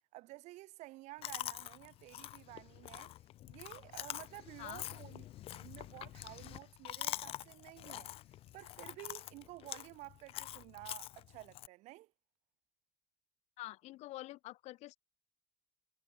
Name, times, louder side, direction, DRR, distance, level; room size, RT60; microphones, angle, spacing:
voice 1, 0.1-3.1 3.5-8.1 8.5-12.1, right 19 dB, 85° right, 2.5 m, -52 dB
Chewing mastication, 1.2-11.7, left 14 dB, 55° left, 0.7 m, -46 dB
voice 2, 13.6-15.0, left 17 dB, 75° left, 1.4 m, -47 dB
cardioid pair, 165°, 12 cm